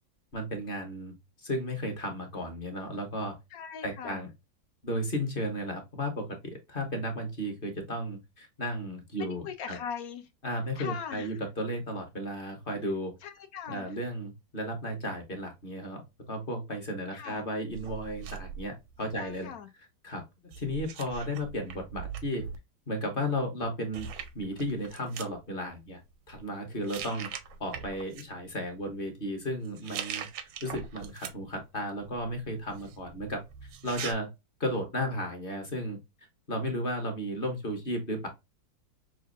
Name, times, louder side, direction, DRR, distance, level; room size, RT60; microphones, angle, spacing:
voice 1, 0.3-3.3 3.8-4.3 4.8-9.8 10.4-13.1 13.7-16.0 16.3-19.5 20.0-20.2 20.6-22.4 22.9-24.1 24.3-26.0 26.3-27.3 27.6-30.2 30.6-33.4 33.8-34.3 34.6-36.0 36.5-38.3, equal, 35° left, 1.0 m, -34 dB
voice 2, 3.5-4.2 9.4-10.3 10.8-11.4 13.2-14.0 17.1-17.4 19.2-19.7 27.1-27.3, left 7 dB, 65° left, 0.9 m, -40 dB
sound 1, 17.7-19.5 20.5-22.6 23.6-23.7 23.9-25.3 26.1-26.4 26.8-28.2 29.7-31.6 32.0-34.1, right 8 dB, 90° right, 1.5 m, -42 dB
6.1 x 2.6 x 2.5 m
omnidirectional pair, 2.1 m